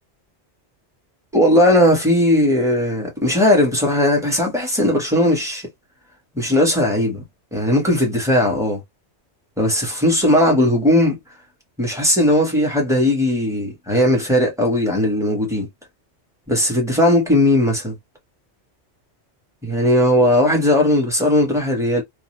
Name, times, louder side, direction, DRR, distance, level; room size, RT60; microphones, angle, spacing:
voice 1, 1.3-5.7 6.3-7.2 7.5-8.8 9.6-11.2 11.8-15.7 16.5-17.9 19.6-22.0, left 1 dB, 5° right, 1.1 m, -17 dB
2.5 x 2.3 x 3.1 m
omnidirectional pair, 1.2 m